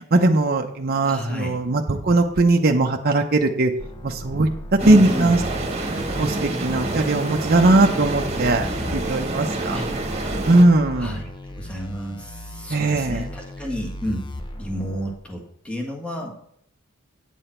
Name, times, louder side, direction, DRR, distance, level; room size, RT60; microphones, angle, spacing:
voice 1, 0.0-3.7 4.0-5.4 6.2-8.7 8.9-9.8 10.5-11.2 12.7-13.2, right 2 dB, 45° right, 2 dB, 0.7 m, -19 dB
voice 2, 1.0-1.6 4.8-5.4 9.7-9.9 11.0-11.3 11.6-14.3 14.6-16.3, equal, 5° left, 0 dB, 1.5 m, -31 dB
sound 1, 3.8-15.1, equal, 20° left, 0.7 m, -37 dB
sound 2, 4.8-10.6, right 2 dB, 30° right, 1.4 m, -27 dB
9.2 x 6.9 x 4.4 m, 0.68 s
head